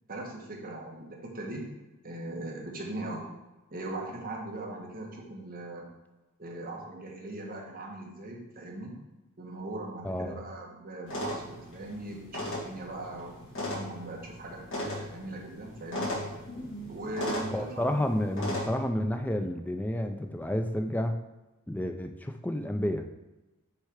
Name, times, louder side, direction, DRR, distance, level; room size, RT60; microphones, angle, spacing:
voice 1, 0.1-1.7 2.0-3.2 3.7-5.9 6.4-9.0 9.4-13.4 13.7-16.1 16.9-18.2, right 2 dB, 40° right, -1 dB, 1.3 m, -40 dB
voice 2, 10.0-10.4 17.5-21.2 21.7-23.0, left 1 dB, 5° left, 6 dB, 0.4 m, -30 dB
sound 1, 11.1-18.7, left 1 dB, 60° left, 1.8 m, -37 dB
6.4 x 3.3 x 4.9 m, 1.0 s
head